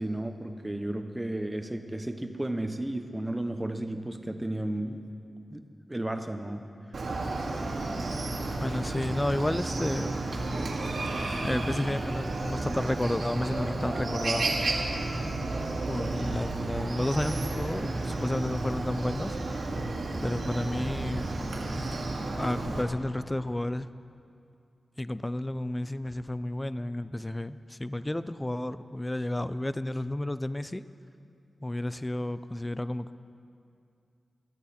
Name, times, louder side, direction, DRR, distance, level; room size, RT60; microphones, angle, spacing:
voice 1, 0.0-5.0 5.5-5.6 5.9-6.6, right 1 dB, 10° right, 6 dB, 0.9 m, -33 dB
Chicken rooster, 6.9-22.8, right 2 dB, 75° right, 2.0 m, -32 dB
voice 2, 8.6-10.2 11.2-14.5 15.9-19.7 20.2-21.3 22.4-23.9 25.0-30.8 31.6-33.2, left 1 dB, 15° left, 13 dB, 0.4 m, -32 dB
22.5 x 14.0 x 4.3 m, 2.5 s
wide cardioid pair, 140°, 0 cm